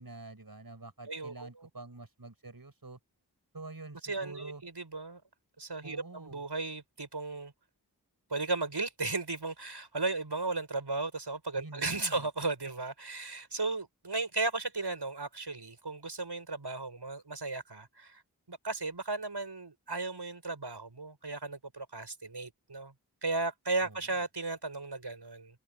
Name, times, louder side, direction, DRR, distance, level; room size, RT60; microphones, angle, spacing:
voice 1, 0.0-3.0 3.5-4.6 5.8-6.4 11.6-12.3 23.8-24.0, right 2 dB, 60° right, 6.0 m, -47 dB
voice 2, 1.1-1.7 4.0-5.2 5.6-7.5 8.3-18.2 18.5-22.9 23.2-25.6, right 3 dB, 90° right, 7.6 m, -35 dB
wide cardioid pair, 40°, 39 cm